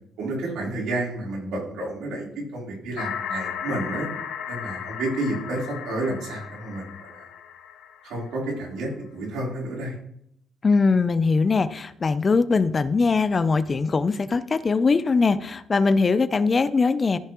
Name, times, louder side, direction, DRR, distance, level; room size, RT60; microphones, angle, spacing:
voice 1, 0.2-2.3 2.5-4.1 4.5-7.3 8.0-9.9, right 2 dB, 85° right, -4 dB, 3.9 m, -30 dB
sound 1, 3.0-8.7, left 8 dB, 85° left, 0.9 m, -35 dB
voice 2, 10.6-17.2, left 4 dB, 35° left, 14 dB, 0.6 m, -21 dB
14.0 x 5.6 x 3.1 m, 0.73 s
cardioid pair, 90°, 0 cm